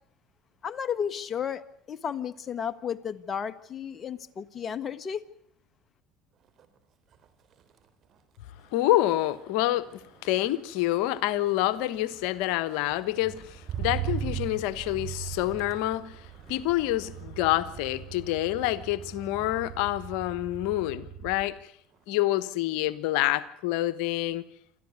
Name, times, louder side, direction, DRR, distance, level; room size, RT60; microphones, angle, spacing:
voice 1, 0.6-1.6 1.9-5.2, left 8 dB, 35° left, 1.5 m, -33 dB
Motor vehicle (road), 6.4-6.8 7.1-21.6 21.9-22.4, right 9 dB, 50° right, 3.8 m, -40 dB
voice 2, 8.7-16.1 16.5-21.5 22.1-24.4, left 15 dB, 75° left, 1.2 m, -27 dB
27.5 x 14.0 x 9.7 m
supercardioid pair, 90°, 0 cm